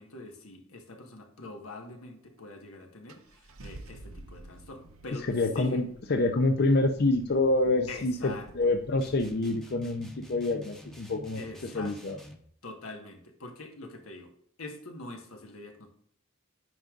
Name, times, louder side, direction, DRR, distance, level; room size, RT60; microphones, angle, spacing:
voice 1, 0.0-5.3 5.5-5.8 7.9-8.5 11.3-12.2 12.6-14.3 14.6-15.9, left 2 dB, 85° left, 3 dB, 1.5 m, -44 dB
Car / Engine starting, 2.4-2.5 3.1-9.3, right 2 dB, 85° right, 0.8 m, -50 dB
voice 2, 5.3-11.4 11.7-12.2, left 2 dB, 50° left, 5 dB, 0.6 m, -27 dB
sound 1, 9.0-12.5, left 1 dB, ahead, 0.9 m, -48 dB
9.3 x 5.2 x 2.5 m, 0.62 s
head